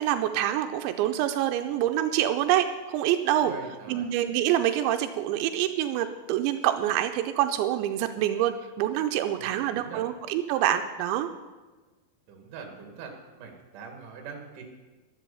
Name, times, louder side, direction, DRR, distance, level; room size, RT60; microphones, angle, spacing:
voice 1, 0.0-3.5 3.9-11.3, right 12 dB, 85° right, 7 dB, 2.9 m, -26 dB
voice 2, 3.4-4.1 9.4-10.0 12.3-14.6, right 6 dB, 55° right, 3 dB, 3.0 m, -42 dB
12.0 x 11.0 x 7.0 m, 1.2 s
omnidirectional pair, 5.3 m